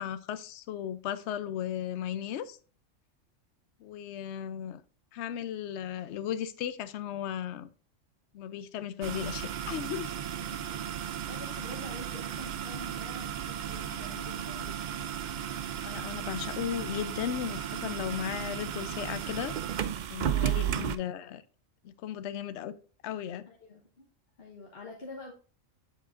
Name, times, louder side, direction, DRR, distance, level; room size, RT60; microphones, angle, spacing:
voice 1, 0.0-2.6 3.8-4.8 5.1-7.7 8.3-10.1 15.8-19.5 20.1-21.4 21.8-22.8 23.0-23.5, left 10 dB, 70° left, 0.8 m, -36 dB
sound 1, 9.0-20.9, right 10 dB, 70° right, 0.4 m, -34 dB
voice 2, 11.3-15.1 20.2-21.3 23.5-24.1 24.4-25.3, left 3 dB, 50° left, 1.3 m, -47 dB
7.6 x 7.2 x 2.5 m
omnidirectional pair, 1.3 m